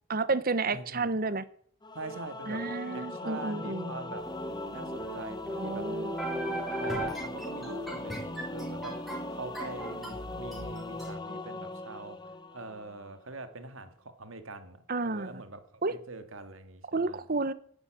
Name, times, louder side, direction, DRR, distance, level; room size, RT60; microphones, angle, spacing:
voice 1, 0.1-1.4 2.5-3.9 5.6-6.2 14.9-15.4 15.8-15.9 16.9-17.5, right 3 dB, 45° right, 16 dB, 0.9 m, -31 dB
voice 2, 0.7-1.1 1.9-4.3 4.7-5.9 6.8-17.3, right 2 dB, 70° right, 9 dB, 2.0 m, -44 dB
Singing / Musical instrument, 1.8-13.1, left 1 dB, 20° left, 1.1 m, -40 dB
sound 1, 4.3-11.1, right 1 dB, ahead, 4.3 m, -38 dB
11.5 x 11.0 x 9.1 m, 0.62 s
head